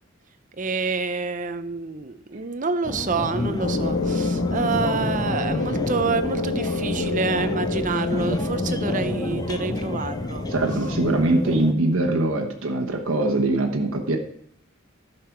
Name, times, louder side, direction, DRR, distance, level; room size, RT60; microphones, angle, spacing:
voice 1, 0.6-10.5, right 4 dB, 40° right, 10 dB, 0.7 m, -28 dB
sound 1, 2.8-11.7, left 1 dB, 20° left, 0.5 m, -29 dB
sound 2, 3.6-12.2, left 3 dB, 55° left, 1.0 m, -29 dB
voice 2, 10.5-14.2, right 2 dB, 85° right, 3 dB, 1.2 m, -22 dB
11.0 x 6.7 x 4.5 m, 0.67 s
head